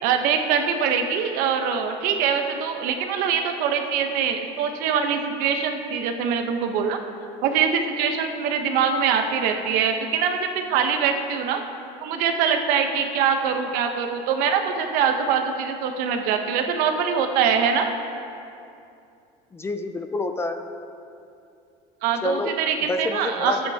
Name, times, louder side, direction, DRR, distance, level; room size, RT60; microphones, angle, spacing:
voice 1, 0.0-7.0 7.4-11.6 12.0-17.9 22.0-23.6, right 7 dB, 70° right, 5 dB, 0.9 m, -23 dB
voice 2, 19.5-20.6 22.2-22.6 22.8-23.6, left 2 dB, 15° left, 8 dB, 0.4 m, -27 dB
13.5 x 8.8 x 2.8 m, 2.6 s
cardioid pair, 130°, 16 cm